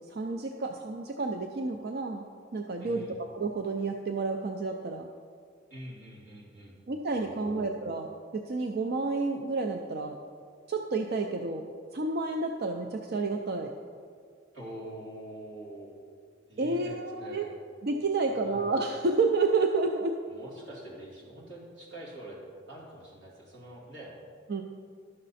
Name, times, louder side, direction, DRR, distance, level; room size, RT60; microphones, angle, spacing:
voice 1, 0.1-2.3 2.5-5.1 6.9-10.2 10.7-13.7 16.6-17.5 17.8-20.2 24.5-24.6, right 3 dB, 55° right, 4 dB, 0.5 m, -30 dB
voice 2, 2.8-3.2 5.7-6.8 7.2-7.7 14.5-15.9 16.5-17.5 18.2-18.7 20.3-22.4 22.7-24.1, right 1 dB, 90° right, -5 dB, 2.6 m, -45 dB
11.5 x 6.6 x 4.2 m, 2.1 s
head